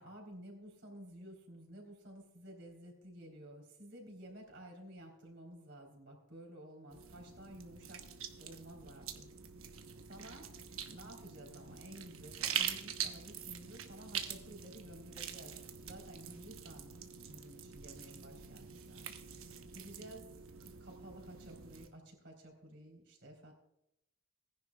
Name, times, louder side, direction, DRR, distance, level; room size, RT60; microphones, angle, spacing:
voice 1, 0.0-8.0 8.4-9.3 9.6-10.5 10.8-15.5 15.8-16.9 17.3-20.3 20.8-23.5, right 1 dB, 55° right, 1 dB, 3.6 m, -53 dB
sound 1, 6.9-21.9, right 8 dB, 85° right, 1.1 m, -44 dB
19.0 x 10.5 x 2.3 m, 0.83 s
head